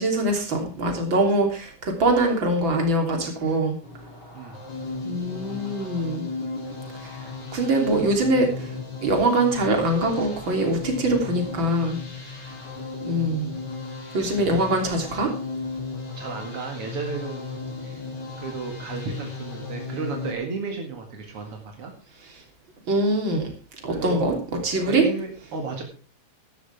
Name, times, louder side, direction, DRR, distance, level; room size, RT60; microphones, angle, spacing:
voice 1, 0.0-3.8 5.0-6.3 7.0-7.1 7.5-8.7 9.0-12.0 13.0-13.5 14.1-15.3 22.9-23.5 23.8-24.4 24.6-25.0, right 1 dB, 30° right, 2 dB, 3.0 m, -23 dB
sound 1, 3.8-20.3, left 3 dB, 25° left, 2.7 m, -35 dB
voice 2, 16.1-17.5 17.8-18.0 18.4-21.9 23.9-24.4 24.9-25.8, right 4 dB, 60° right, 2 dB, 1.5 m, -33 dB
14.5 x 12.5 x 3.4 m, 0.36 s
omnidirectional pair, 5.9 m